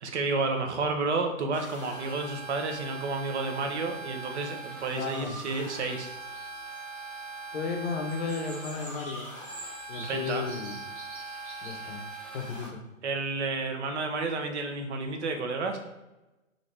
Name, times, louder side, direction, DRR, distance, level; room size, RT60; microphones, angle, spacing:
voice 1, 0.0-6.1 10.0-10.5 13.0-15.8, right 3 dB, 55° right, 4 dB, 0.6 m, -31 dB
sound 1, 1.5-12.7, right 3 dB, 5° left, 0.6 m, -41 dB
voice 2, 4.9-5.4 7.5-9.3 9.9-10.8 11.6-12.0 12.3-12.8, left 5 dB, 50° left, 4 dB, 0.6 m, -34 dB
sound 2, 5.8-7.2 8.1-12.3, right 1 dB, 20° right, 1.1 m, -47 dB
2.8 x 2.6 x 3.2 m, 1.0 s
hypercardioid pair, 140°, 41 cm